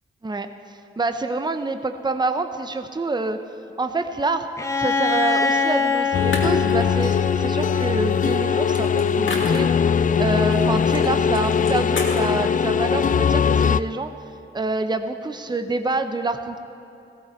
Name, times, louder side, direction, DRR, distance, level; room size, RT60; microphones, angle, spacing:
voice 1, 0.2-3.4 3.8-4.5 4.8-9.9 10.2-14.1 14.5-16.6, right 3 dB, 20° right, 8 dB, 0.8 m, -27 dB
Bowed string instrument, 4.6-8.3, left 4 dB, 15° left, 1.2 m, -24 dB
sound 1, 5.7-5.8 6.3-7.1 7.8-10.0 10.5-11.1 11.3-12.3, left 3 dB, 65° left, 2.2 m, -32 dB
sound 2, 6.1-13.8, left 6 dB, 40° left, 0.4 m, -20 dB
15.5 x 14.0 x 4.4 m, 2.8 s
cardioid pair, 55°, 21 cm